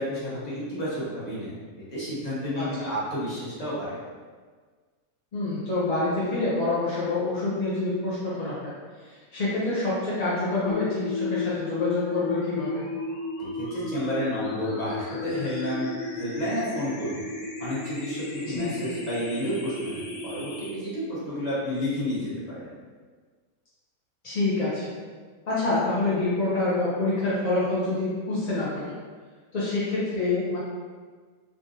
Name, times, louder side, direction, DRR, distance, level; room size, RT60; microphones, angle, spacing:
voice 1, 0.0-1.5 1.8-4.0 13.4-15.9 16.2-17.2 17.6-22.7, equal, 30° left, -9 dB, 1.1 m, -31 dB
voice 2, 2.6-2.9 5.3-8.7 9.0-12.8 18.4-18.7 24.2-24.9 25.5-28.9 29.5-30.6, left 2 dB, 50° left, -9 dB, 0.5 m, -27 dB
sound 1, 10.7-20.7, left 3 dB, 90° left, 1.1 m, -34 dB
3.6 x 2.6 x 2.6 m, 1.5 s
omnidirectional pair, 1.5 m